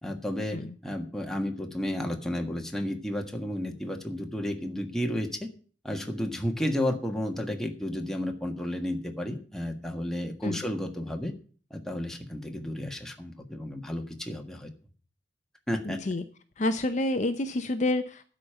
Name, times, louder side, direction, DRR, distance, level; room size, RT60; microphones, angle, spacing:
voice 1, 0.0-5.5 5.8-11.3 11.7-14.7 15.7-16.0, left 1 dB, 5° left, 2 dB, 1.5 m, -32 dB
voice 2, 15.9-16.2 16.6-18.2, left 2 dB, 40° left, 8 dB, 0.7 m, -28 dB
12.0 x 5.2 x 8.9 m, 0.42 s
head